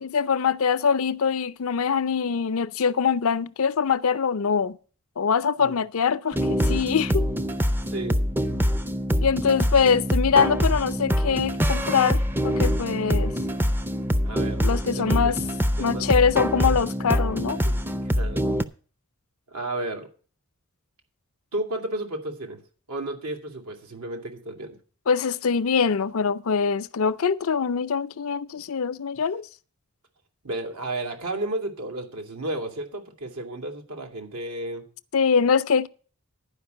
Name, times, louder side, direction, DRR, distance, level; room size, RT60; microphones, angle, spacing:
voice 1, 0.0-4.8 5.2-7.3 9.2-13.3 14.6-15.4 15.8-17.6 25.1-29.5 35.1-35.9, left 6 dB, 70° left, 0.5 m, -23 dB
sound 1, 6.3-18.6, equal, 10° right, 0.4 m, -24 dB
voice 2, 7.9-8.2 14.2-15.4 15.8-16.3 16.5-16.8 17.6-18.5 19.5-20.1 21.5-22.6 22.9-24.8 30.4-34.9, right 1 dB, 90° right, 2.4 m, -33 dB
11.5 x 5.2 x 7.9 m
head